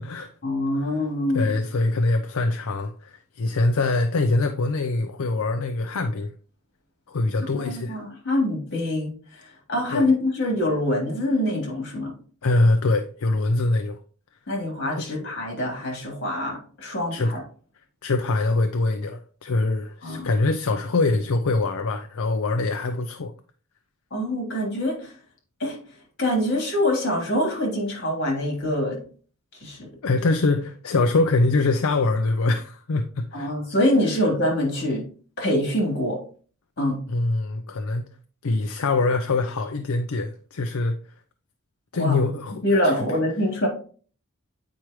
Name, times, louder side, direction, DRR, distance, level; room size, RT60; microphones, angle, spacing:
voice 1, 0.4-1.6 7.6-12.1 14.5-17.4 20.0-20.3 24.1-25.1 25.6-25.8 26.2-29.0 29.5-29.9 33.3-35.0 35.4-36.2 36.8-37.0 42.0-42.2 42.6-43.7, left 1 dB, 55° left, 3.3 m, -25 dB
voice 2, 1.3-6.3 7.1-8.0 9.9-10.1 12.4-14.0 14.9-15.1 17.1-17.3 18.0-23.3 30.0-33.5 37.1-38.1 38.4-41.0 41.9-43.0, left 2 dB, 70° left, 0.5 m, -24 dB
8.8 x 4.8 x 3.1 m
head